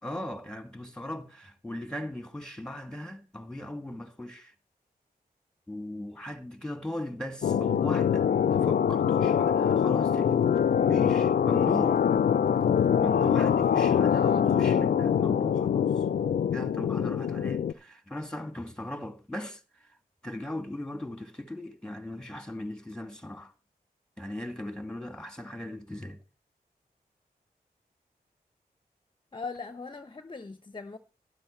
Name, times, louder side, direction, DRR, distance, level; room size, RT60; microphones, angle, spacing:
voice 1, 0.0-4.5 5.7-10.6 10.9-12.0 13.0-16.1 16.5-20.0 20.2-23.5 24.2-26.2, left 1 dB, 5° left, 2.0 m, -38 dB
sound 1, 7.4-17.7, left 8 dB, 75° left, 0.5 m, -24 dB
voice 2, 14.1-14.5 29.3-31.0, left 4 dB, 30° left, 0.8 m, -40 dB
12.0 x 10.5 x 4.4 m
cardioid pair, 55°, 16 cm